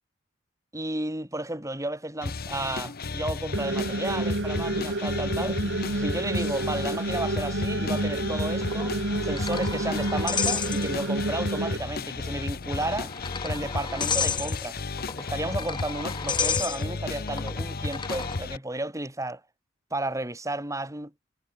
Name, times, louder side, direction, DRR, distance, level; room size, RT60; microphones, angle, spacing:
voice 1, 0.7-5.6 5.9-9.0 9.2-13.1 13.4-14.8 15.2-19.4 19.9-21.1, right 2 dB, 15° right, 6.9 m, -33 dB
sound 1, 2.2-18.6, left 3 dB, 50° left, 0.9 m, -33 dB
sound 2, 3.5-11.8, right 2 dB, 60° right, 1.8 m, -29 dB
sound 3, 8.6-11.3 11.5-11.7 12.5-18.4, left 6 dB, 25° left, 3.0 m, -32 dB
head